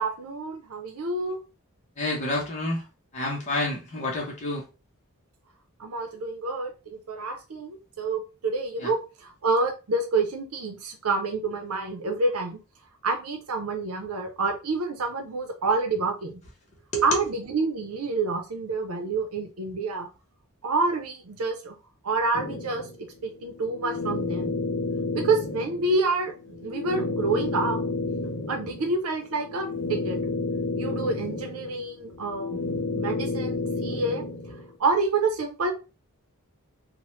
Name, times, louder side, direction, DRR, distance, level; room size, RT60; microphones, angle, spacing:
voice 1, 0.0-1.4 5.8-12.6 13.0-16.4 17.0-20.1 20.6-21.8 22.0-24.6 25.1-27.8 28.5-30.2 30.8-32.6 32.9-34.2 34.8-35.7, right 3 dB, 80° right, 0.6 m, -28 dB
voice 2, 2.0-2.8 3.1-4.6 8.8-8.9 16.9-17.2, left 1 dB, 35° left, 0.7 m, -29 dB
sound 1, 22.3-34.7, left 3 dB, 90° left, 0.6 m, -31 dB
3.0 x 2.1 x 3.1 m
head